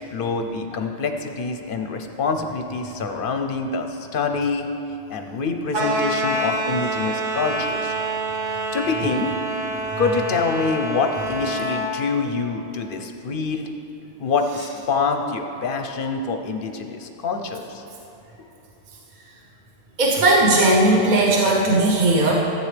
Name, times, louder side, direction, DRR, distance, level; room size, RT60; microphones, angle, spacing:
voice 1, 0.0-4.7 5.1-7.9 8.5-9.4 10.0-13.7 14.2-17.8, left 4 dB, 50° left, 5 dB, 0.8 m, -26 dB
sound 1, 5.7-11.9, right 2 dB, 70° right, 1.5 m, -26 dB
voice 2, 20.0-22.3, right 2 dB, 40° right, -2 dB, 1.0 m, -17 dB
13.5 x 8.1 x 3.3 m, 2.8 s
omnidirectional pair, 1.3 m